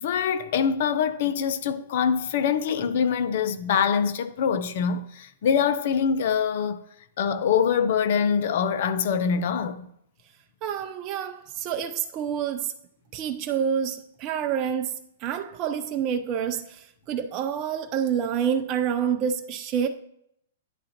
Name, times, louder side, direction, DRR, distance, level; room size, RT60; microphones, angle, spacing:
voice 1, 0.0-6.8 7.2-9.9, left 7 dB, 60° left, 0.6 m, -24 dB
voice 2, 10.6-12.7 13.1-19.9, right 8 dB, 35° right, 0.5 m, -28 dB
9.9 x 3.7 x 2.9 m
hypercardioid pair, 120°, 0 cm